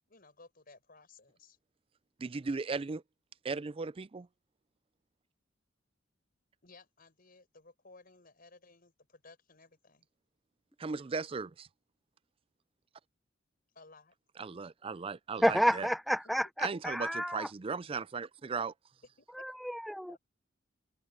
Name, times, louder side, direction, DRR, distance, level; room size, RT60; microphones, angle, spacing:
voice 1, 0.1-1.6 6.6-10.1 13.7-14.1 16.2-16.3 19.2-19.4 20.1-20.2, left 3 dB, 50° left, 5.9 m, -58 dB
voice 2, 2.2-3.0 3.4-4.3 10.8-11.7 14.4-15.9 16.6-18.7, right 4 dB, 30° right, 0.4 m, -37 dB
voice 3, 15.4-17.5 19.4-20.2, equal, ahead, 0.8 m, -30 dB
head